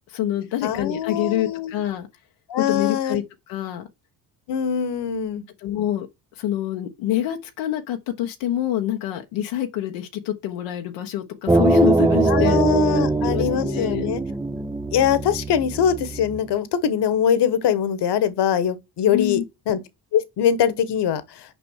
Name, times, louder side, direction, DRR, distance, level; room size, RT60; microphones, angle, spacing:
voice 1, 0.1-2.1 2.6-3.9 5.6-6.1 6.3-12.6 12.9-14.1 19.1-19.4, left 12 dB, 90° left, 1.2 m, -26 dB
voice 2, 0.6-1.7 2.5-3.2 4.5-5.4 12.3-14.2 14.9-19.4 19.7-19.8 20.1-21.6, left 8 dB, 60° left, 1.4 m, -22 dB
sound 1, 11.5-16.4, right 3 dB, 10° right, 0.5 m, -22 dB
6.8 x 5.2 x 6.4 m
cardioid pair, 85°, 45 cm